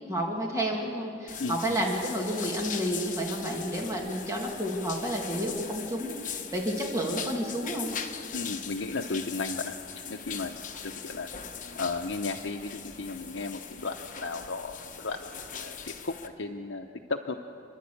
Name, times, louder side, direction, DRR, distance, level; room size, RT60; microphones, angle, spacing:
voice 1, 0.1-7.9, equal, 15° right, -1 dB, 2.4 m, -30 dB
sound 1, 1.3-16.3, left 7 dB, 45° left, 1.1 m, -40 dB
voice 2, 1.4-1.8 8.3-9.7 10.0-10.6 10.8-11.3 11.7-13.9 14.2-15.2 15.6-15.8 16.0-17.4, left 3 dB, 70° left, 4 dB, 0.8 m, -34 dB
29.0 x 11.5 x 8.5 m, 2.6 s
head